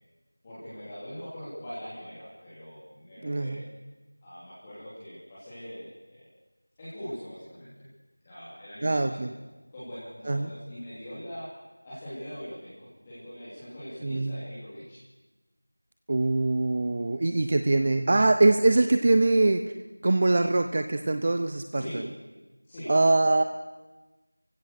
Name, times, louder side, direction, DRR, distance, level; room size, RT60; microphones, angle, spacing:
voice 1, 0.4-3.7 4.2-6.3 6.8-7.9 8.2-9.3 9.7-11.5 11.8-15.0 21.7-22.0 22.6-23.2, equal, 15° left, -12 dB, 3.5 m, -42 dB
voice 2, 3.2-3.6 8.8-9.3 10.3-10.5 14.0-14.4 16.1-19.6 20.0-22.0 22.9-23.4, right 2 dB, 25° right, 7 dB, 0.7 m, -23 dB
29.5 x 16.0 x 6.7 m, 1.2 s
figure-of-eight pair, 175°, 0 cm